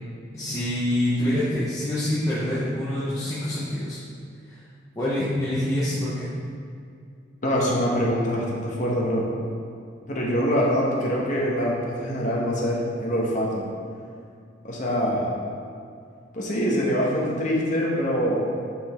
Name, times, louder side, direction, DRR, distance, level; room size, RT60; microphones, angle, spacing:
voice 1, 0.3-4.0 4.5-4.6 5.0-6.3, left 1 dB, 15° left, -11 dB, 0.9 m, -26 dB
voice 2, 7.4-9.3 10.1-13.6 14.6-15.3 16.3-18.4, equal, 40° left, -4 dB, 1.2 m, -24 dB
5.9 x 5.2 x 4.3 m, 2.3 s
head